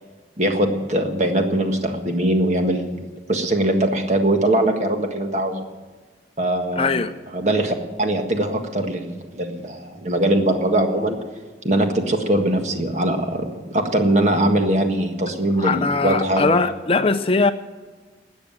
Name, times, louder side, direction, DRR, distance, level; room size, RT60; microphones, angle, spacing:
voice 1, 0.4-3.0 3.3-5.6 6.4-6.9 7.3-11.2 11.6-16.6, right 1 dB, 40° right, 4 dB, 1.6 m, -21 dB
voice 2, 6.8-7.1 15.6-17.5, left 3 dB, 35° left, 10 dB, 0.5 m, -20 dB
13.0 x 8.8 x 8.9 m, 1.4 s
head